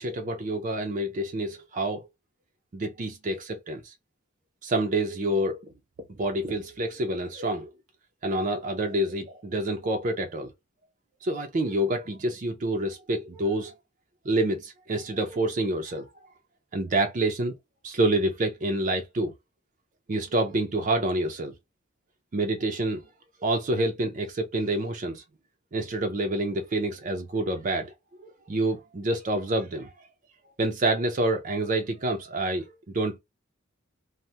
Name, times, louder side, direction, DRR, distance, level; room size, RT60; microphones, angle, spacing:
voice 1, 0.0-2.1 2.7-3.9 4.6-5.7 6.1-7.7 8.2-10.5 11.2-13.7 14.2-16.1 16.7-17.5 17.8-19.3 20.1-21.5 22.3-23.0 23.4-25.2 25.7-27.9 28.2-29.9 30.6-32.7 32.9-33.2, right 1 dB, 40° right, 0.4 m, -27 dB
2.7 x 2.0 x 3.2 m
head